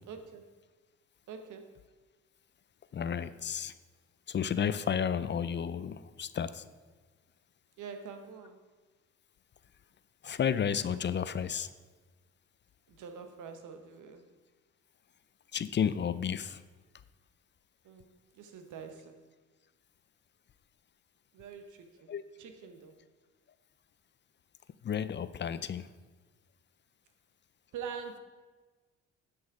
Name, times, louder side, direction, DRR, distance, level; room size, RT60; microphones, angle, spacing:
voice 1, 0.1-0.4 1.3-1.7 7.8-8.6 13.0-14.2 17.8-18.0 18.4-19.1 21.3-22.1 22.4-23.0 27.7-28.2, right 6 dB, 80° right, 7 dB, 1.1 m, -44 dB
voice 2, 2.9-3.7 4.3-6.6 10.2-11.7 15.5-16.6 22.1-22.2 24.8-25.9, left 8 dB, 40° left, 14 dB, 0.4 m, -32 dB
9.6 x 6.3 x 4.8 m, 1.3 s
cardioid pair, 90°, 30 cm